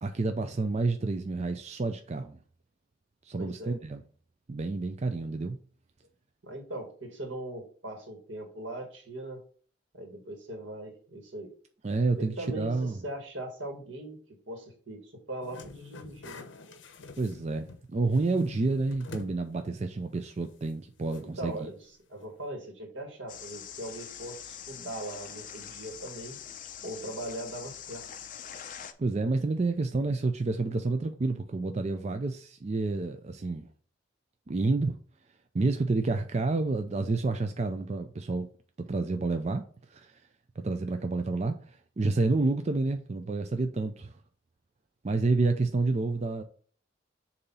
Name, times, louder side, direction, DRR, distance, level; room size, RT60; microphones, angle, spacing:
voice 1, 0.0-2.4 3.3-4.0 4.5-5.6 11.8-13.0 17.2-21.7 29.0-33.7 34.5-35.0 35.5-38.5 38.8-39.6 39.9-40.1 40.6-44.1 45.0-46.4, right 3 dB, 35° right, 0.4 m, -29 dB
voice 2, 3.4-3.7 6.4-9.4 9.9-11.5 12.2-14.2 14.5-16.5 21.2-21.8 22.1-26.4 26.8-28.1, right 1 dB, 80° right, 1.8 m, -40 dB
sound 1, 15.4-17.9 18.1-19.4 19.7-19.8 21.1-21.2, left 4 dB, 75° left, 0.8 m, -45 dB
sound 2, 23.3-28.9, left 9 dB, 45° left, 0.6 m, -44 dB
6.8 x 2.8 x 5.5 m
head